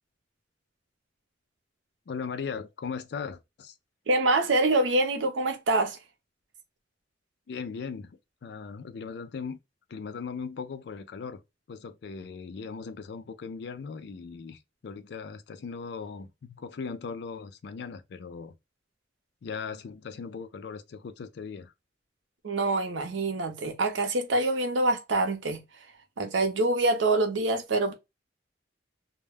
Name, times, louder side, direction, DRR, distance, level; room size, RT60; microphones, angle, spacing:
voice 1, 2.1-3.7 7.5-9.6 9.9-11.4 11.7-18.6 19.4-21.7, left 5 dB, 60° left, 0.3 m, -38 dB
voice 2, 4.1-6.0 22.4-25.9 26.2-27.9, right 2 dB, 80° right, 0.6 m, -25 dB
2.2 x 2.0 x 3.2 m
head